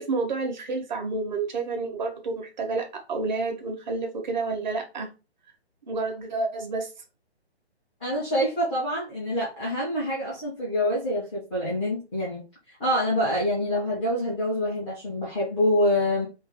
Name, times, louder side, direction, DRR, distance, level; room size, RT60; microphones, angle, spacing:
voice 1, 0.0-5.1 5.9-6.9, right 3 dB, 45° right, 1.3 m, -29 dB
voice 2, 8.0-12.4 12.8-16.3, left 1 dB, 5° right, 0.4 m, -26 dB
3.1 x 3.0 x 3.6 m
figure-of-eight pair, 135°, 33 cm